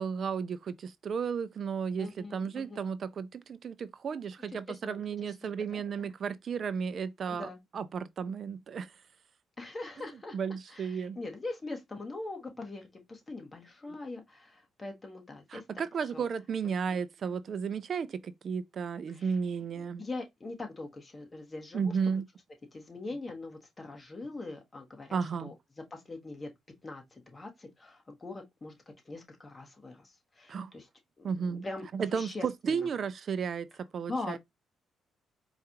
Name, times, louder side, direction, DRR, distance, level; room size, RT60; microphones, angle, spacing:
voice 1, 0.0-9.0 10.3-11.2 15.5-20.0 21.7-22.3 25.1-25.5 30.5-30.7 31.2-31.6 31.9-33.7 33.9-34.4, right 6 dB, 55° right, 0.3 m, -33 dB
voice 2, 2.0-2.8 4.7-5.8 7.3-7.6 9.6-10.4 10.7-15.6 16.1-16.2 19.1-19.4 19.7-22.1 22.7-25.5 25.9-26.5 26.8-28.8 29.0-30.9 31.2-31.8 32.1-32.9 34.1-34.4, left 2 dB, 25° left, 1.3 m, -42 dB
4.6 x 2.3 x 3.0 m
cardioid pair, 90°, 0 cm